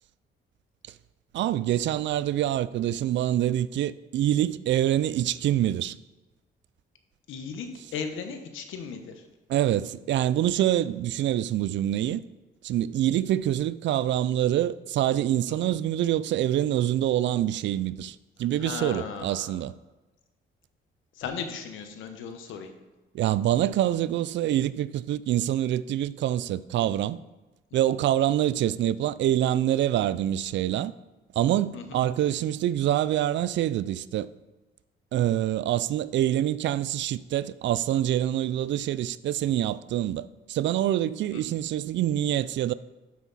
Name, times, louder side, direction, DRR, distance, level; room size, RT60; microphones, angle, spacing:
voice 1, 1.3-5.9 9.5-12.2 12.6-19.7 23.1-27.2 27.7-30.9 31.4-34.3 35.1-42.7, right 12 dB, 70° right, 0.4 m, -26 dB
voice 2, 7.3-9.1 15.5-15.8 18.6-19.6 21.2-22.7 31.7-32.0 41.3-41.4, left 6 dB, 85° left, 1.2 m, -37 dB
12.0 x 5.9 x 4.2 m
cardioid pair, 90°, 20 cm